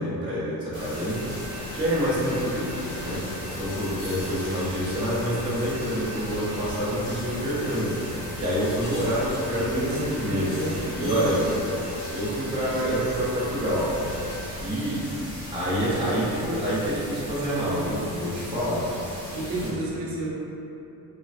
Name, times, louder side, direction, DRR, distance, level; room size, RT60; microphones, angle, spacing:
voice 1, 0.0-3.3 3.5-8.0 8.4-10.5 11.0-11.4 12.1-13.9 14.6-15.1 15.5-18.8 19.3-19.7, equal, 15° right, -9 dB, 0.4 m, -27 dB
sound 1, 0.7-19.7, left 1 dB, 25° left, 1.2 m, -38 dB
sound 2, 0.9-14.4, equal, 60° left, 0.7 m, -38 dB
voice 2, 9.5-11.4 19.3-20.3, right 1 dB, 60° right, -5 dB, 0.7 m, -30 dB
3.1 x 2.1 x 2.5 m, 2.8 s
cardioid pair, 155°, 37 cm